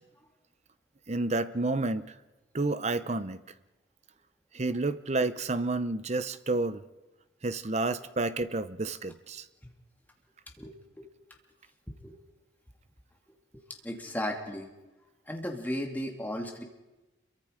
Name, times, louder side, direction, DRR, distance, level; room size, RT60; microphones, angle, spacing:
voice 1, 1.1-2.1 2.5-3.4 4.5-6.8 7.4-9.4, right 2 dB, 35° right, 0.8 m, -30 dB
voice 2, 10.6-11.1 12.0-12.2 13.5-14.7 15.3-16.6, equal, 10° left, 2.5 m, -36 dB
28.0 x 23.5 x 5.1 m
head